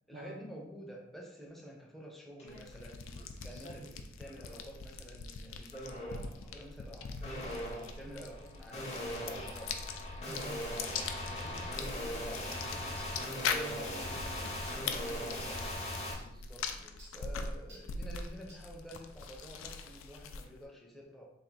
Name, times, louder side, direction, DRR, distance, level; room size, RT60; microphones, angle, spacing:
voice 1, 0.1-7.6 8.0-9.9 11.3-14.5 15.5-15.8 16.2-21.3, equal, ahead, -2 dB, 0.6 m, -50 dB
sound 1, 2.4-2.6 3.0-3.7 4.2-4.7 5.7-6.3 7.2-16.1, left 1 dB, 35° left, 0.8 m, -40 dB
sound 2, 2.5-20.7, left 5 dB, 80° left, 0.4 m, -42 dB
sound 3, 9.5-9.7 10.3-10.5 11.1-11.4 12.1-12.2 13.0-13.1 14.0-14.2 14.6-14.9 15.4-15.6 16.2-16.3 17.0-17.2 17.7-17.9 18.5-18.7 19.2-19.4, right 1 dB, 60° right, 1.2 m, -57 dB
voice 2, 10.3-10.7 13.4-14.5 14.8-15.6, right 2 dB, 35° right, 1 dB, 0.3 m, -48 dB
3.4 x 2.5 x 4.0 m, 0.79 s
head